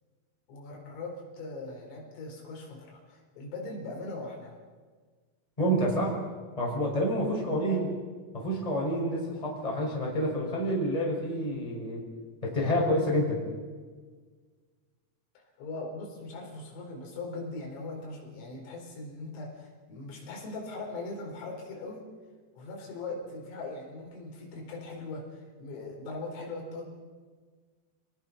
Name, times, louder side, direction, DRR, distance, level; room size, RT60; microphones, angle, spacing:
voice 1, 0.5-4.6 7.3-8.0 15.6-22.0 22.6-26.9, left 2 dB, 75° left, -1 dB, 7.0 m, -40 dB
voice 2, 5.6-6.2 6.6-7.9 8.3-12.0 12.4-13.4, equal, 5° left, -2 dB, 5.3 m, -28 dB
29.0 x 19.5 x 6.0 m, 1.5 s
omnidirectional pair, 6.0 m